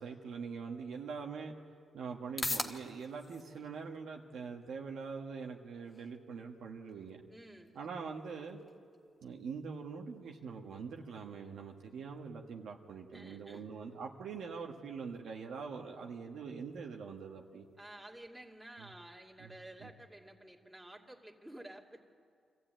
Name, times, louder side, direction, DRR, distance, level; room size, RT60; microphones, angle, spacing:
voice 1, 0.0-1.5 1.9-7.2 7.7-8.6 9.2-17.7 18.8-18.9 19.4-19.9, right 5 dB, 80° right, 1 dB, 1.5 m, -44 dB
sound 1, 0.9-17.9, left 2 dB, 30° left, 1.4 m, -49 dB
voice 2, 7.3-7.7 13.1-13.7 17.8-22.0, right 1 dB, 10° right, -1 dB, 2.5 m, -52 dB
25.0 x 14.0 x 9.0 m, 2.3 s
cardioid pair, 85°, 0 cm